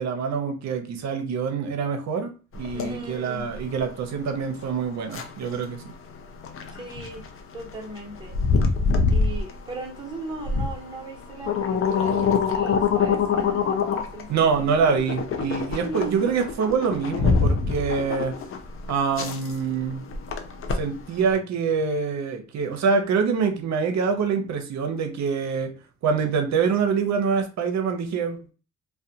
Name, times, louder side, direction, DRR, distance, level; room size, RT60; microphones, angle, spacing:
voice 1, 0.0-2.3 2.6-5.8 14.3-18.3 18.9-20.0 20.7-25.7 26.0-28.5, right 5 dB, 65° right, 0.7 m, -25 dB
sound 1, 2.5-21.4, left 5 dB, 45° left, 0.5 m, -26 dB
voice 2, 2.7-3.5 6.7-7.2 7.5-8.4 9.1-14.9 15.7-16.5, right 2 dB, 15° right, 1.0 m, -38 dB
2.4 x 2.2 x 2.8 m
cardioid pair, 90°, 30 cm